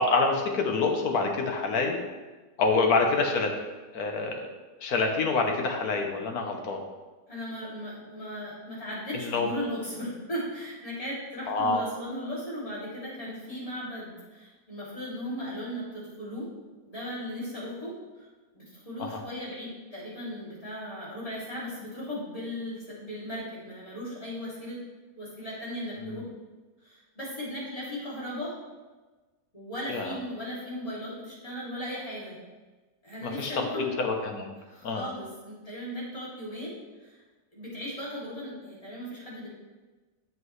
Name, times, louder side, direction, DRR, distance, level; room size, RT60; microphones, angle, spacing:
voice 1, 0.0-2.0 2.6-3.5 3.9-4.5 4.8-6.8 9.1-9.5 11.5-11.8 19.0-19.2 26.0-26.3 29.9-30.2 33.2-34.5 34.8-35.0, left 3 dB, 65° left, 3 dB, 1.4 m, -27 dB
voice 2, 7.3-16.5 16.8-18.3 18.5-24.8 25.2-26.3 26.8-28.5 29.5-32.4 33.0-34.0 34.7-37.2 37.5-39.5, equal, 20° left, -8 dB, 2.8 m, -37 dB
8.1 x 7.6 x 3.2 m, 1.3 s
omnidirectional pair, 1.8 m